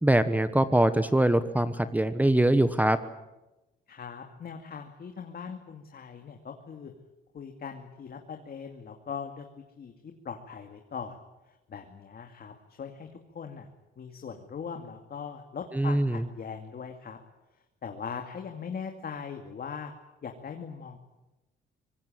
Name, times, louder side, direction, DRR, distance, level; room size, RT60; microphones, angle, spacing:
voice 1, 0.0-3.0 15.7-16.2, right 1 dB, 10° right, 12 dB, 1.2 m, -23 dB
voice 2, 3.9-6.9 7.3-9.5 9.8-11.2 11.5-13.1 13.3-13.7 14.0-17.2 17.8-19.9 20.2-21.0, left 6 dB, 50° left, 4 dB, 2.4 m, -40 dB
24.5 x 20.5 x 9.0 m, 1.0 s
cardioid pair, 90°, 20 cm